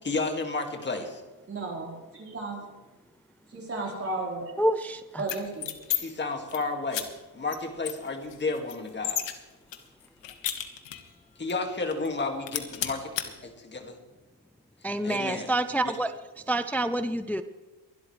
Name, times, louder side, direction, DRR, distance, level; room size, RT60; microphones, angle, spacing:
voice 1, 0.0-1.2 5.9-7.1 7.3-9.2 11.4-13.1 13.4-14.0 15.0-15.5 15.8-15.9, left 3 dB, 25° left, 4 dB, 2.1 m, -32 dB
voice 2, 1.5-2.7 3.5-4.5 5.2-5.8, right 2 dB, 30° right, -1 dB, 4.3 m, -34 dB
voice 3, 4.6-5.2 14.8-16.1 16.5-17.4, right 1 dB, 5° left, 10 dB, 0.4 m, -27 dB
sound 1, 5.2-6.0 6.3-6.6 6.9-7.0 7.5-7.6 7.8-9.3 9.7-11.1 11.5-11.6 11.9-12.2 12.5-13.3, left 10 dB, 80° left, 1.6 m, -32 dB
23.0 x 12.0 x 3.3 m, 1.2 s
cardioid pair, 150°, 43 cm